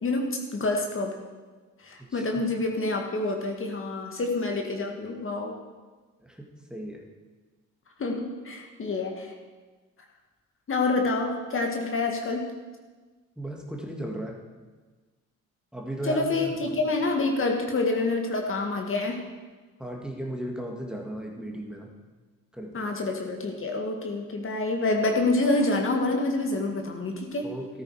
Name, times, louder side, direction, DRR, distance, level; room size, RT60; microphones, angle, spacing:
voice 1, 0.0-1.2 1.8-5.5 8.0-9.3 10.7-12.5 16.0-19.2 22.7-27.5, left 2 dB, 45° left, 2 dB, 2.1 m, -27 dB
voice 2, 2.1-2.4 6.2-7.0 13.4-14.4 15.7-16.7 19.8-21.9 22.5-22.9 27.4-27.8, right 1 dB, 5° right, 0 dB, 2.1 m, -36 dB
13.5 x 13.0 x 4.9 m, 1.3 s
cardioid pair, 90°, 30 cm